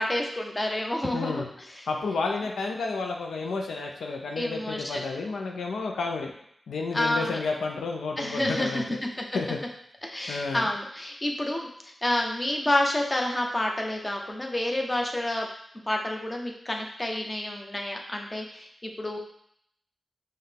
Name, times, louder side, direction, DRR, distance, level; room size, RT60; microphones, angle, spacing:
voice 1, 0.0-1.5 1.8-1.9 4.4-5.0 6.9-7.4 8.2-8.8 10.0-15.5 15.9-19.2, left 1 dB, 25° left, 1 dB, 0.8 m, -29 dB
voice 2, 1.1-1.5 1.9-6.3 6.7-9.0 9.3-9.6 10.3-10.7, left 4 dB, 90° left, 2 dB, 0.4 m, -31 dB
5.4 x 2.2 x 3.4 m, 0.69 s
cardioid pair, 40°, 0 cm